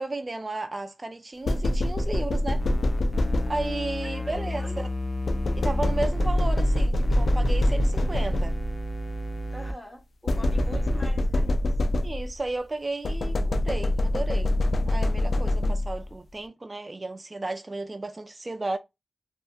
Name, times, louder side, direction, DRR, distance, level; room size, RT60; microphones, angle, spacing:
voice 1, 0.0-2.6 3.5-4.9 5.6-8.6 12.0-14.6 14.9-18.8, right 2 dB, 35° right, 0.3 m, -33 dB
sound 1, 1.4-3.9 5.3-8.8 10.3-12.5 13.0-16.1, left 1 dB, 70° left, 0.3 m, -25 dB
sound 2, 2.6-9.7 10.3-11.0, left 1 dB, 40° left, 0.7 m, -29 dB
voice 2, 4.0-4.9 9.5-11.6 16.0-16.1, equal, 10° left, 0.9 m, -44 dB
2.7 x 2.4 x 2.3 m
cardioid pair, 60°, 0 cm